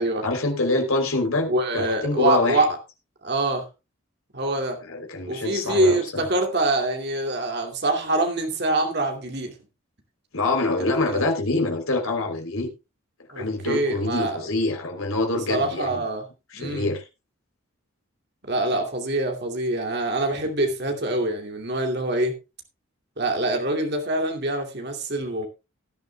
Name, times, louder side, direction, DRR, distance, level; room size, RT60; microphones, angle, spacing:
voice 1, 0.2-2.6 4.9-6.2 10.3-12.7 13.3-16.0 16.5-17.0, left 2 dB, 80° left, 3 dB, 3.4 m, -25 dB
voice 2, 1.5-2.8 3.2-3.7 4.3-4.8 5.3-9.5 10.8-11.3 13.3-14.5 15.3-16.2 16.6-16.9 18.4-22.3 23.2-25.5, right 2 dB, 50° right, 2 dB, 2.5 m, -25 dB
18.0 x 11.0 x 2.3 m, 0.26 s
head